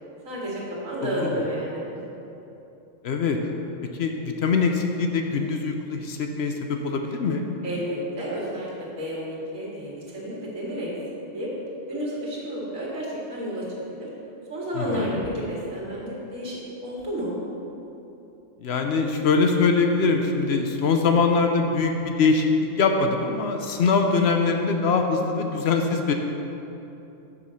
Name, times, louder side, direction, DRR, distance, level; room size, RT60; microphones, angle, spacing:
voice 1, 0.2-1.8 7.6-8.7 9.0-10.9 11.3-11.5 11.9-13.6 14.0-14.1 14.5-17.3, equal, 90° right, -5 dB, 2.2 m, -31 dB
voice 2, 1.0-1.4 3.0-3.4 4.0-7.4 14.7-15.2 18.6-22.5 22.8-26.1, left 4 dB, 60° left, 4 dB, 0.8 m, -23 dB
6.7 x 5.3 x 6.3 m, 2.9 s
omnidirectional pair, 1.4 m